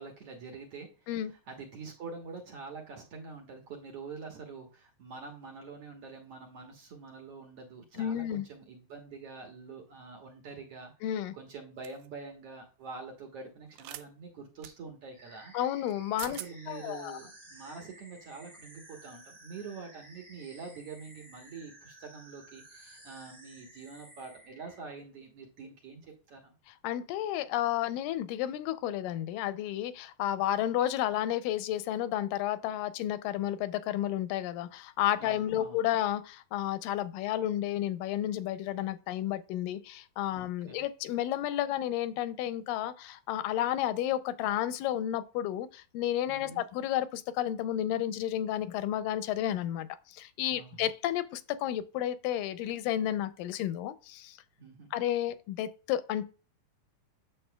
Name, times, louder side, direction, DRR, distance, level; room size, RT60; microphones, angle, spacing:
voice 1, 0.0-15.5 16.2-26.5 35.2-35.8 40.3-40.8 46.3-46.6 50.5-50.9 54.6-54.9, right 4 dB, 60° right, 1.8 m, -46 dB
voice 2, 8.0-8.5 11.0-11.3 15.5-16.4 16.7-17.2 26.8-54.4 54.9-56.2, left 12 dB, 85° left, 2.2 m, -32 dB
sound 1, 11.8-12.1 13.7-14.1 14.6-14.7 15.9-16.0 16.2-16.5, right 14 dB, 85° right, 2.3 m, -42 dB
sound 2, 15.1-24.8, right 1 dB, 15° right, 1.1 m, -54 dB
8.7 x 7.1 x 2.2 m
omnidirectional pair, 3.9 m